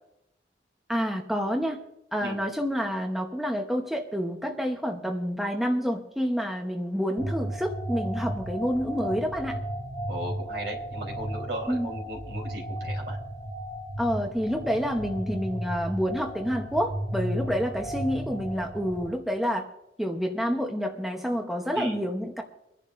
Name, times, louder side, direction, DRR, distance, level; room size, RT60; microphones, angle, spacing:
voice 1, 0.9-1.8 2.1-9.6 11.7-11.9 14.0-19.7 20.0-22.4, equal, ahead, 2 dB, 0.9 m, -28 dB
sound 1, 7.2-19.1, right 1 dB, 50° right, 3.8 m, -34 dB
voice 2, 10.1-13.2 21.7-22.0, right 1 dB, 70° right, 1 dB, 3.6 m, -36 dB
24.5 x 10.5 x 2.5 m, 0.83 s
head